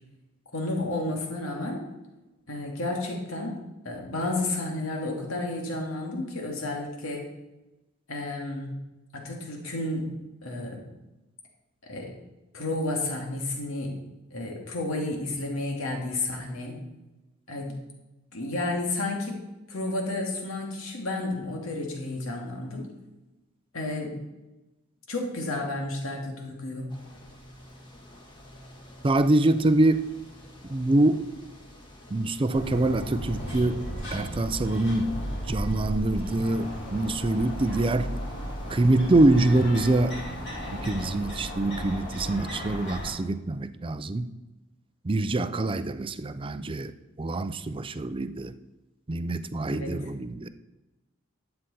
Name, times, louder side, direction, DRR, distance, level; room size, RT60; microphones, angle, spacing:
voice 1, 0.5-1.9 2.5-3.6 3.8-7.3 8.1-8.8 9.1-10.1 10.4-10.8 11.8-12.1 12.5-13.9 14.3-16.7 17.5-17.8 18.3-19.4 19.7-22.9 23.7-24.1 25.1-26.9 49.7-49.9, left 2 dB, 85° left, 0 dB, 2.3 m, -31 dB
sound 1, 26.9-41.4, equal, 20° left, 1.7 m, -48 dB
voice 2, 29.0-30.1 30.7-31.3 32.1-33.8 34.1-35.1 35.5-38.1 38.7-40.2 40.7-44.3 45.0-48.5 49.1-50.5, right 2 dB, 25° right, 12 dB, 0.5 m, -25 dB
sound 2, 32.5-43.1, equal, 60° left, 3.5 m, -35 dB
11.5 x 7.9 x 4.2 m, 1.0 s
head